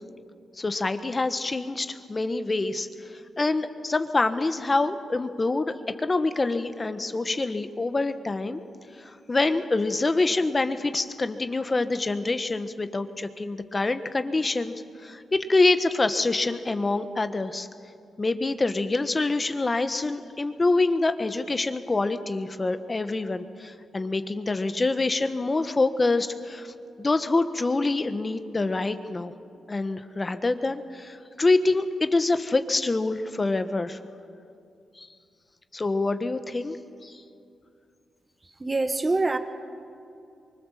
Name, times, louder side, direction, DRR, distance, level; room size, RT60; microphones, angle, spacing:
voice 1, 0.6-2.9 3.4-8.6 9.0-17.7 18.2-26.7 27.0-29.3 29.7-34.0 35.0-35.1 35.7-36.8 37.0-37.1, left 3 dB, 30° left, 10 dB, 1.3 m, -26 dB
voice 2, 38.6-39.4, right 2 dB, 25° right, 8 dB, 1.4 m, -24 dB
24.5 x 24.0 x 7.5 m, 2.5 s
cardioid pair, 65°, 0 cm